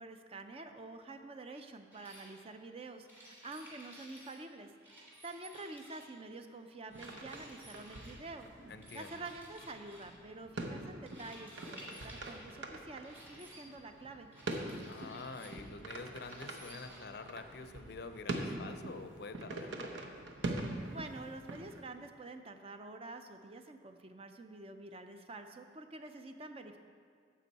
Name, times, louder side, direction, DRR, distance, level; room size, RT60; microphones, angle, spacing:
voice 1, 0.0-8.5 8.9-14.3 20.4-26.8, right 2 dB, 30° right, 7 dB, 0.5 m, -48 dB
sound 1, 1.9-2.3 3.1-4.4 4.8-6.2 6.9-8.2 8.8-10.1 11.1-12.5 13.0-13.6 14.3-15.6 16.2-17.1, right 1 dB, 10° right, 1.7 m, -55 dB
sound 2, 6.9-21.8, right 2 dB, 75° right, 0.8 m, -44 dB
voice 2, 8.7-9.3 14.8-19.8, left 4 dB, 55° left, 9 dB, 0.5 m, -47 dB
9.9 x 7.3 x 4.1 m, 2.1 s
head